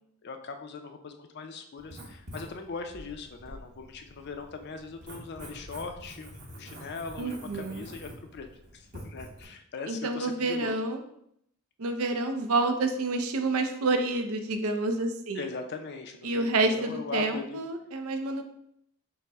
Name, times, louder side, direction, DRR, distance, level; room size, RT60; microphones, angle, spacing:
voice 1, 0.2-8.5 8.7-10.7 15.4-17.6, left 4 dB, 50° left, 6 dB, 0.5 m, -40 dB
Writing, 1.8-9.4, equal, 40° right, 1.0 m, -46 dB
voice 2, 7.2-7.8 9.9-11.0 11.8-15.5 16.2-18.4, right 2 dB, 80° right, 6 dB, 0.5 m, -28 dB
5.4 x 2.1 x 3.5 m, 0.73 s
head